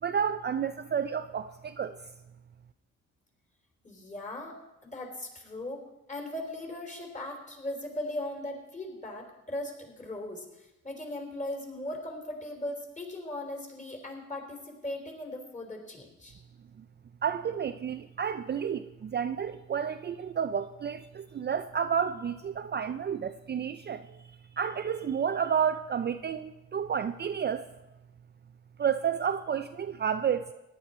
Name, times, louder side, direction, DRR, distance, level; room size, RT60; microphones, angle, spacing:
voice 1, 0.0-2.0 16.8-16.9 17.2-27.7 28.8-30.5, right 7 dB, 35° right, 9 dB, 0.5 m, -31 dB
voice 2, 3.8-4.6 4.8-5.8 6.1-16.3, left 1 dB, 25° left, 3 dB, 3.5 m, -38 dB
16.5 x 10.0 x 4.3 m, 0.98 s
cardioid pair, 90°, 30 cm